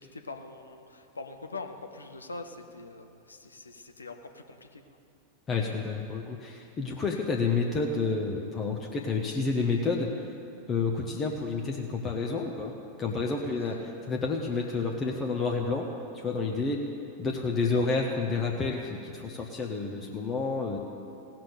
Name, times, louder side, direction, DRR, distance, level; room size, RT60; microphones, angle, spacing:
voice 1, 0.0-4.8 13.6-13.7 17.7-17.9, left 3 dB, 75° left, 6 dB, 0.8 m, -43 dB
voice 2, 5.5-10.1 10.7-12.7 13.0-15.9 16.1-16.8 17.2-20.8, left 4 dB, 25° left, 0 dB, 0.9 m, -29 dB
17.0 x 5.9 x 6.7 m, 2.6 s
figure-of-eight pair, 90°, 0 cm